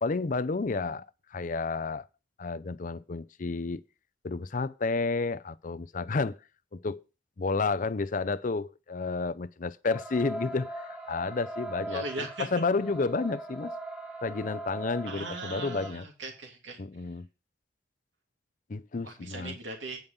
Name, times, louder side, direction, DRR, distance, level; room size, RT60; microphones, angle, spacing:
voice 1, 0.0-2.1 2.4-3.8 4.2-6.4 6.7-7.0 7.4-13.7 14.2-16.1 16.8-17.3 18.7-19.6, left 3 dB, 45° left, 0.5 m, -31 dB
sound 1, 9.9-15.9, right 1 dB, 10° right, 2.1 m, -40 dB
voice 2, 11.9-12.5 15.0-16.8 19.0-20.0, right 2 dB, 80° right, 2.7 m, -38 dB
9.5 x 5.3 x 7.0 m
head